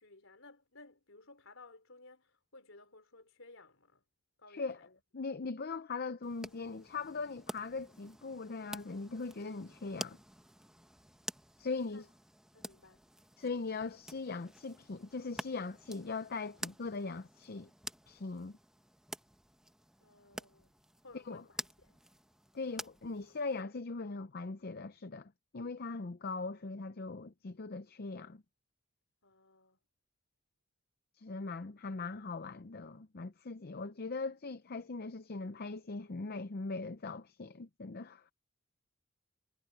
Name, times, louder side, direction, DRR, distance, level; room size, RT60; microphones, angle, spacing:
voice 1, 0.0-4.0 4.4-5.0 11.7-12.0 12.5-13.1 20.0-22.0 29.2-29.8, left 2 dB, 70° left, 4.8 m, -58 dB
voice 2, 5.1-10.2 11.6-12.1 13.4-17.7 18.1-18.6 21.1-21.4 22.5-28.4 31.2-38.3, left 3 dB, 50° left, 0.6 m, -40 dB
sound 1, 6.2-23.6, right 1 dB, 5° right, 1.1 m, -49 dB
head